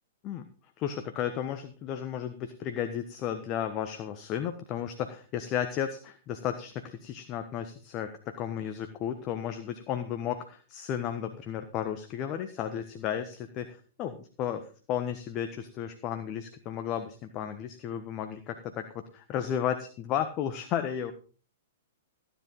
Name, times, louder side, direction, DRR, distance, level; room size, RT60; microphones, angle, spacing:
voice 1, 0.8-21.1, left 9 dB, 35° left, 7 dB, 1.2 m, -34 dB
15.0 x 10.5 x 3.8 m, 0.38 s
figure-of-eight pair, 110°, 0 cm